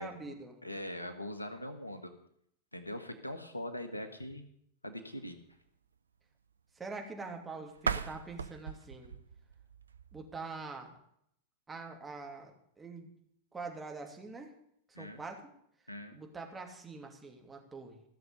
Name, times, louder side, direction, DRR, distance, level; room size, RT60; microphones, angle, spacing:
voice 1, 0.0-0.6 6.7-9.1 10.1-10.9 11.7-13.1 13.5-14.5 14.9-15.5 16.1-18.0, right 3 dB, 15° right, 2 dB, 2.7 m, -44 dB
voice 2, 0.6-2.1 2.7-4.4 4.8-5.4 14.9-15.2 15.9-16.2, left 1 dB, 85° left, 9 dB, 1.5 m, -41 dB
sound 1, 7.7-10.6, right 6 dB, 75° right, 0.6 m, -39 dB
16.0 x 7.0 x 8.1 m, 0.71 s
figure-of-eight pair, 90°, 0 cm